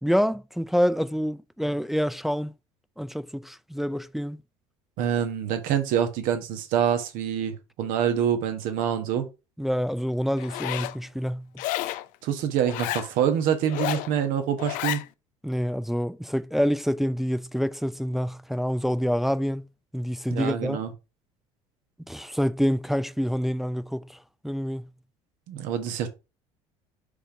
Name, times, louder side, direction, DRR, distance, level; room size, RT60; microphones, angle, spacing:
voice 1, 0.0-2.5 3.0-4.4 9.6-11.5 15.4-19.6 19.9-20.8 22.1-24.2 24.4-24.9, equal, ahead, 0.4 m, -27 dB
voice 2, 5.0-9.3 12.2-15.0 20.3-20.9 25.5-26.1, right 9 dB, 65° right, 1.3 m, -26 dB
Zipper (clothing), 10.4-11.0 11.6-12.1 12.6-13.1 13.6-14.1 14.6-15.0, left 15 dB, 60° left, 0.5 m, -30 dB
5.2 x 3.7 x 4.8 m
hypercardioid pair, 70°, 15 cm